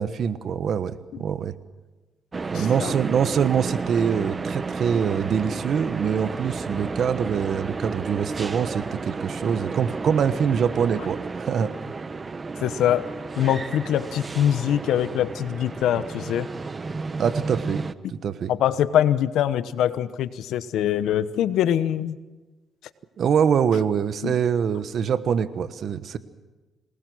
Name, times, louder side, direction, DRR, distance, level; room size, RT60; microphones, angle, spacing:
voice 1, 0.0-1.5 2.5-11.7 17.2-17.8 18.1-18.5 23.2-26.2, right 7 dB, 60° right, 12 dB, 1.2 m, -24 dB
sound 1, 2.3-17.9, right 4 dB, 30° right, 0.9 m, -32 dB
voice 2, 2.5-2.9 12.6-13.1 13.4-16.5 18.5-22.2 24.2-24.3, left 10 dB, 80° left, 14 dB, 1.0 m, -23 dB
26.5 x 20.0 x 6.4 m, 1.2 s
cardioid pair, 90°, 0 cm